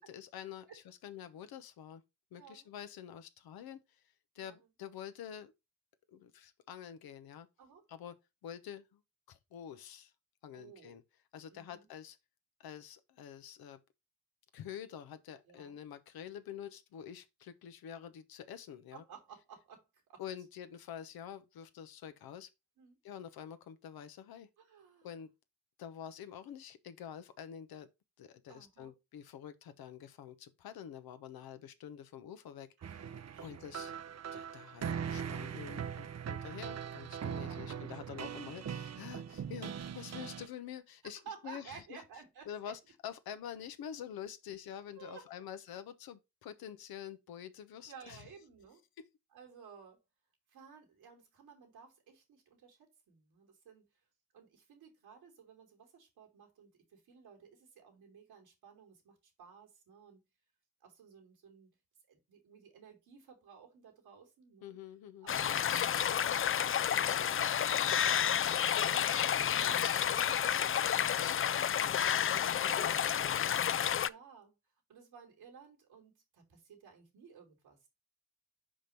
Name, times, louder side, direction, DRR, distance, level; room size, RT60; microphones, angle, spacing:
voice 1, 0.1-2.0 2.3-3.8 4.3-5.5 6.1-7.5 7.9-9.0 9.3-10.1 10.4-11.0 11.3-12.2 12.6-13.8 14.5-19.0 20.2-22.5 23.0-24.5 25.0-25.3 25.8-27.9 28.2-33.0 33.4-33.9 34.3-42.0 42.5-48.2 49.0-49.1 64.6-65.3 71.1-71.7 72.3-73.8, left 9 dB, 80° left, 0.9 m, -47 dB
voice 2, 2.3-2.7 4.4-4.7 7.6-7.8 10.5-11.0 11.5-11.9 15.5-15.8 18.9-20.2 22.8-22.9 24.6-25.2 28.5-28.9 32.8-33.7 37.3-38.4 41.0-42.7 44.9-45.5 47.9-48.8 49.3-50.0 50.5-53.8 54.3-60.2 60.8-61.7 62.1-64.7 65.2-71.1 71.8-73.0 74.0-74.5 74.9-77.9, right 6 dB, 80° right, 2.7 m, -56 dB
sound 1, 32.8-40.5, right 8 dB, 45° right, 0.7 m, -41 dB
sound 2, 65.3-74.1, left 9 dB, 35° left, 0.4 m, -30 dB
5.2 x 5.0 x 5.8 m
hypercardioid pair, 40°, 37 cm